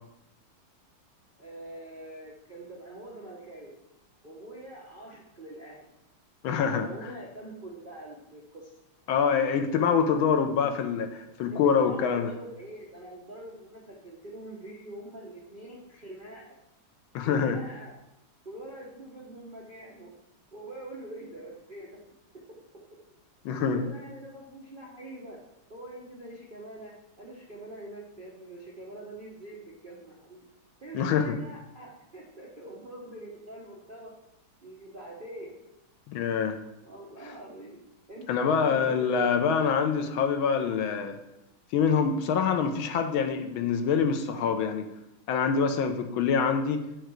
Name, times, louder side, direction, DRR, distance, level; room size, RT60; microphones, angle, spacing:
voice 1, 1.4-3.8 4.2-5.9 6.7-8.8 11.5-16.6 17.2-17.9 18.4-20.1 20.5-22.0 23.7-25.4 25.7-30.4 30.8-34.1 34.6-35.6 36.8-37.8 38.1-39.4, right 1 dB, 45° right, -4 dB, 0.6 m, -44 dB
voice 2, 6.4-6.8 9.1-12.3 17.1-17.6 23.4-23.8 30.9-31.4 36.1-36.6 38.3-41.2 41.7-44.8 45.3-46.8, left 6 dB, 75° left, 6 dB, 1.4 m, -25 dB
6.6 x 4.6 x 6.2 m, 0.88 s
omnidirectional pair, 2.4 m